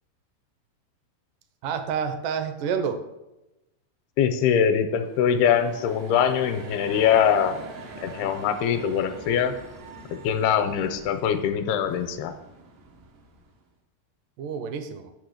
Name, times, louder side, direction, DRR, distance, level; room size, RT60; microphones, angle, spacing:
voice 1, 1.6-3.0 14.4-15.1, right 6 dB, 75° right, 8 dB, 2.0 m, -29 dB
voice 2, 4.2-7.5 8.0-9.5 10.2-12.3, left 8 dB, 85° left, 8 dB, 2.5 m, -23 dB
sound 1, 4.9-13.6, right 3 dB, 90° right, 3.6 m, -44 dB
8.9 x 6.1 x 6.6 m, 0.96 s
omnidirectional pair, 4.7 m